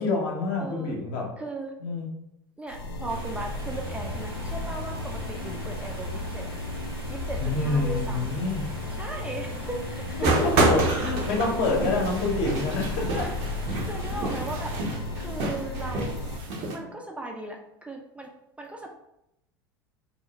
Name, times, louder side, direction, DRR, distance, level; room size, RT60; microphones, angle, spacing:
voice 1, 0.0-1.3 1.8-2.1 7.4-8.7 10.2-13.3 14.1-14.3, left 3 dB, 55° left, 0 dB, 0.7 m, -27 dB
voice 2, 0.6-0.9 1.4-1.7 2.6-6.5 7.1-8.3 9.0-10.3 12.4-12.5 13.1-13.3 13.8-14.7 15.2-16.1 16.7-18.3 18.6-18.9, right 2 dB, 10° right, 0 dB, 0.3 m, -37 dB
sound 1, 2.7-16.4, left 2 dB, 85° left, 0.4 m, -34 dB
sound 2, 3.1-14.8, right 1 dB, 90° right, 0.7 m, -43 dB
sound 3, 10.2-16.8, right 2 dB, 55° right, 0.6 m, -28 dB
2.5 x 2.0 x 2.9 m, 0.83 s
hypercardioid pair, 80°, 12 cm